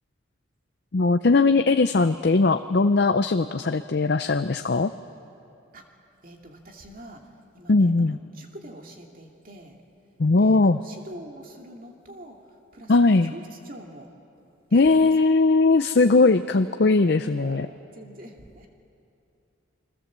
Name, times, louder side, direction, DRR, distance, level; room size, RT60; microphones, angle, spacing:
voice 1, 0.9-4.9 7.7-8.2 10.2-10.8 12.9-13.3 14.7-17.7, left 3 dB, 55° left, 9 dB, 0.5 m, -19 dB
voice 2, 6.2-9.8 10.4-14.1 14.7-15.1 16.9-18.7, right 1 dB, 45° right, 2 dB, 2.5 m, -45 dB
29.0 x 22.0 x 7.5 m, 2.7 s
head